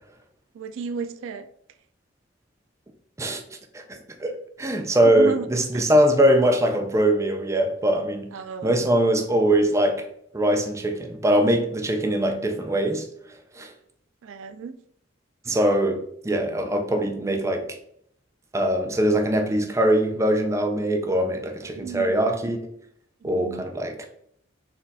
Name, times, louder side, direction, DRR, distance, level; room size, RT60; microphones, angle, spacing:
voice 1, 0.5-1.5 5.0-5.5 5.7-5.8 8.3-8.9 14.2-14.7 21.6-22.2 23.2-23.7, right 4 dB, 85° right, 10 dB, 0.3 m, -33 dB
voice 2, 3.2-4.3 4.6-8.4 8.6-10.1 10.3-13.1 13.5-13.7 15.5-16.0 16.2-17.7 18.5-22.6 23.2-24.0, right 1 dB, 15° right, 4 dB, 0.4 m, -22 dB
4.3 x 2.4 x 4.0 m, 0.69 s
head